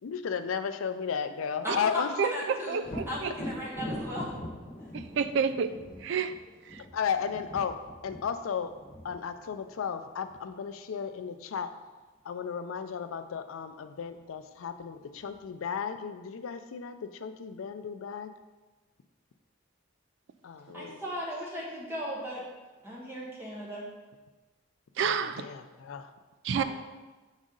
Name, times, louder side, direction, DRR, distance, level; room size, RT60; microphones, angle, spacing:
voice 1, 0.0-2.1 6.9-7.8 8.0-8.7 9.0-11.7 12.2-18.3 20.4-21.0 25.0-26.1, left 6 dB, 90° left, 10 dB, 0.4 m, -34 dB
voice 2, 1.6-2.8 3.1-4.3 20.7-22.4 22.8-23.8 26.5-26.6, equal, 10° right, -4 dB, 1.2 m, -36 dB
voice 3, 2.2-3.3 4.9-5.7 6.0-6.3 6.7-6.8 25.0-25.4 26.4-26.6, right 6 dB, 60° right, 11 dB, 0.3 m, -29 dB
Thunder, 2.8-10.5 14.1-14.2 14.7-15.6, left 1 dB, 30° left, 1.3 m, -42 dB
6.2 x 4.1 x 3.8 m, 1.2 s
head